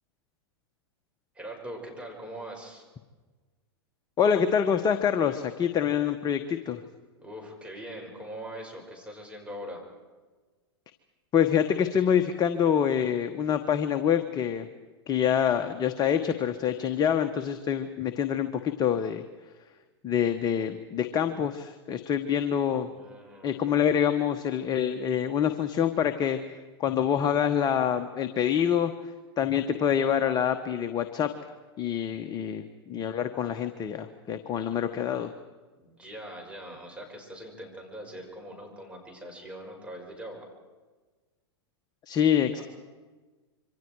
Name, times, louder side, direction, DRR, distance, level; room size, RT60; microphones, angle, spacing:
voice 1, 1.3-2.8 7.2-9.8 22.6-23.8 35.8-40.4 42.6-42.7, right 1 dB, 10° right, 0 dB, 6.1 m, -42 dB
voice 2, 4.2-6.8 11.3-14.7 15.1-19.2 20.0-22.9 23.4-28.9 29.4-31.3 31.8-35.3 42.1-42.6, left 8 dB, 30° left, 8 dB, 1.1 m, -26 dB
27.0 x 24.5 x 4.8 m, 1.3 s
hypercardioid pair, 110°, 14 cm